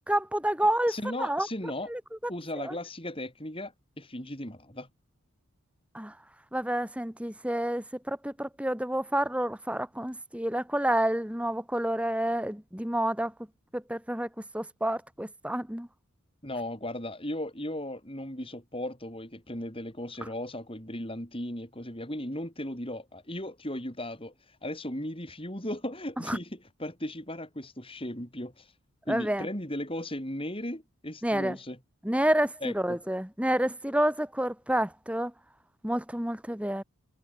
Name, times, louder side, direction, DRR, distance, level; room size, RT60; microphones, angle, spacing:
voice 1, 0.1-0.9 1.2-1.5 1.9-2.0 2.6-2.7 5.9-6.1 6.5-13.3 13.7-14.3 14.5-15.9 26.3-26.4 29.1-29.5 31.2-31.6 32.0-35.3 35.8-36.8, right 1 dB, 5° right, 2.0 m, -29 dB
voice 2, 0.9-1.9 2.3-4.9 16.4-24.3 24.6-28.7 29.1-31.8 32.6-33.0, left 1 dB, 25° left, 7.1 m, -36 dB
head